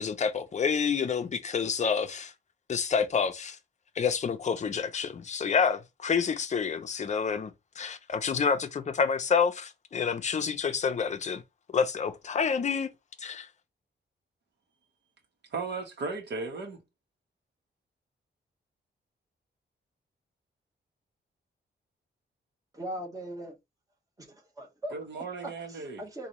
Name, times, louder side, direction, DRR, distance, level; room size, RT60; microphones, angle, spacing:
voice 1, 0.0-2.3 2.7-3.6 4.0-7.5 7.8-11.4 11.7-12.9 13.2-13.5, left 6 dB, 40° left, 0.6 m, -28 dB
voice 2, 15.5-16.8 24.9-26.0, right 4 dB, 65° right, 1.4 m, -36 dB
voice 3, 22.7-23.5 24.2-24.9 25.4-26.3, right 1 dB, 20° right, 1.3 m, -39 dB
3.9 x 2.7 x 3.1 m
wide cardioid pair, 140°, 19 cm